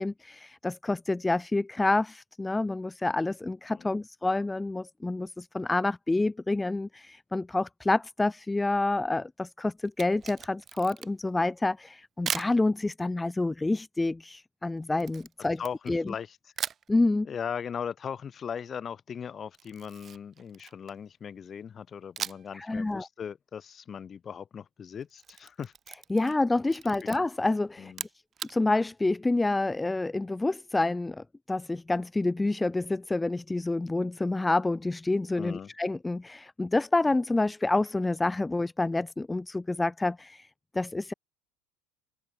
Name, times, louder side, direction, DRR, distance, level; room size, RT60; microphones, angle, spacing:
voice 1, 0.0-15.6 15.9-16.1 16.9-17.3 22.5-23.1 26.1-27.9 28.5-40.5 40.7-41.1, left 2 dB, 10° left, 0.5 m, -28 dB
Camera, 9.9-11.3 12.3-12.6 15.0-16.2 16.6-16.9 19.5-21.1 22.2-22.6 22.9-23.0 25.0-26.4 26.7-27.2 27.9-28.6, right 8 dB, 30° right, 6.9 m, -38 dB
voice 2, 15.6-16.4 17.2-25.7 27.8-28.1 35.4-35.7, left 7 dB, 30° left, 5.4 m, -38 dB
open air
supercardioid pair, 120°, 0 cm